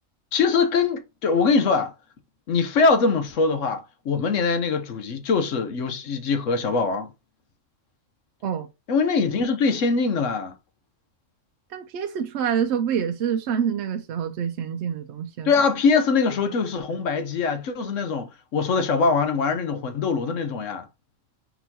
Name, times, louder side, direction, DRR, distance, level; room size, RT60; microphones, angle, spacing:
voice 1, 0.3-1.9 2.5-7.1 8.9-10.5 15.4-20.9, left 4 dB, 75° left, 1.1 m, -23 dB
voice 2, 11.7-15.5, right 8 dB, 65° right, 0.8 m, -26 dB
4.5 x 3.9 x 2.8 m
omnidirectional pair, 1.3 m